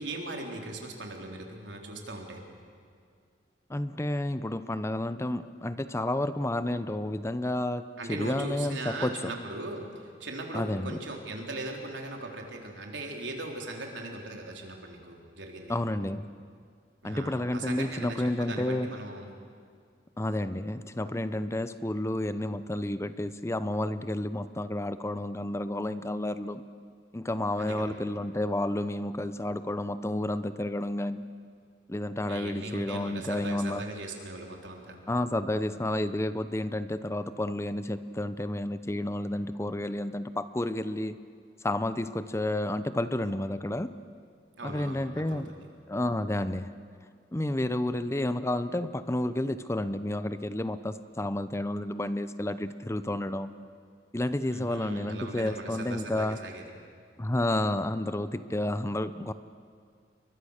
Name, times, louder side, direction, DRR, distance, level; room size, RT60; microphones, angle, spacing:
voice 1, 0.0-2.4 8.0-15.8 17.0-19.3 27.6-27.8 32.3-35.0 44.5-45.6 54.5-56.6, right 2 dB, 90° right, 1 dB, 3.8 m, -39 dB
voice 2, 3.7-9.1 10.5-11.0 15.7-16.3 17.0-18.9 20.2-26.6 27.1-31.3 31.9-33.8 35.1-41.2 41.6-43.9 44.6-45.5 45.9-46.7 47.3-53.5 54.1-56.4 57.2-59.3, left 1 dB, 15° left, 12 dB, 0.7 m, -31 dB
29.0 x 23.5 x 6.6 m, 2.1 s
head